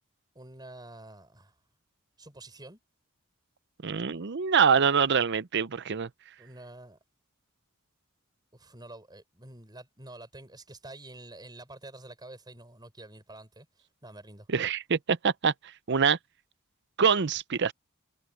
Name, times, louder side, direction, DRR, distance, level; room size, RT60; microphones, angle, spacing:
voice 1, 0.4-1.5 2.2-2.8 6.4-7.0 8.5-13.7 14.0-14.5, right 2 dB, 20° right, 5.4 m, -48 dB
voice 2, 3.8-6.1 14.5-16.2 17.0-17.7, right 6 dB, 50° right, 0.6 m, -25 dB
head